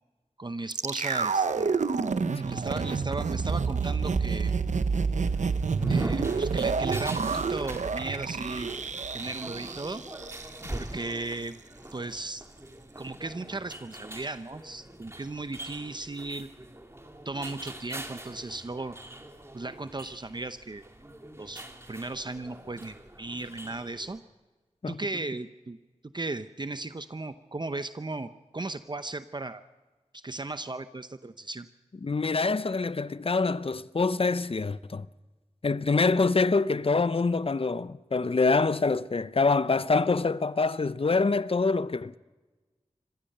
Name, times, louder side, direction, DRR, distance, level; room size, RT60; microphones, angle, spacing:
voice 1, 0.4-1.7 2.4-4.5 5.9-8.7 9.1-10.0 10.7-11.6 11.9-12.4 13.0-16.5 17.2-19.0 19.5-20.9 21.4-24.2 24.9-25.8 26.0-29.6 30.1-31.7, right 2 dB, 40° right, 0.8 m, -36 dB
sound 1, 0.7-10.8 11.1-11.2, right 5 dB, 90° right, 0.8 m, -29 dB
sound 2, 5.2-24.2, right 1 dB, 20° right, 2.3 m, -43 dB
voice 2, 32.0-35.1 35.6-42.2, left 4 dB, 50° left, 0.7 m, -25 dB
26.0 x 16.0 x 6.7 m
wide cardioid pair, 55°, 12 cm